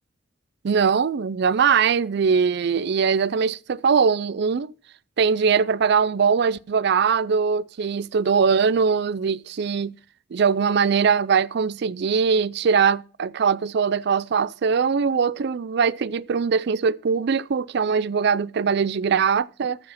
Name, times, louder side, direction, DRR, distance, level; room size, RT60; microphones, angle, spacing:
voice 1, 0.6-4.7 5.2-9.9 10.3-19.8, right 6 dB, 60° right, 0.4 m, -21 dB
14.0 x 4.8 x 5.8 m
head